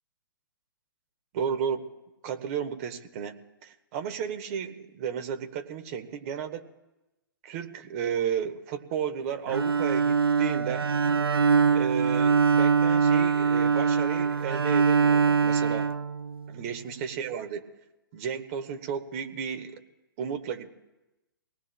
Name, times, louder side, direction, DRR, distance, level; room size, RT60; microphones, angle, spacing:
voice 1, 1.3-1.9 2.2-6.7 7.4-10.9 11.7-15.9 16.5-17.6 18.1-19.8 20.2-20.7, right 8 dB, 40° right, 8 dB, 1.3 m, -33 dB
Bowed string instrument, 9.5-16.6, right 5 dB, 80° right, 0.5 m, -23 dB
25.5 x 19.0 x 2.2 m, 1.0 s
figure-of-eight pair, 125°, 12 cm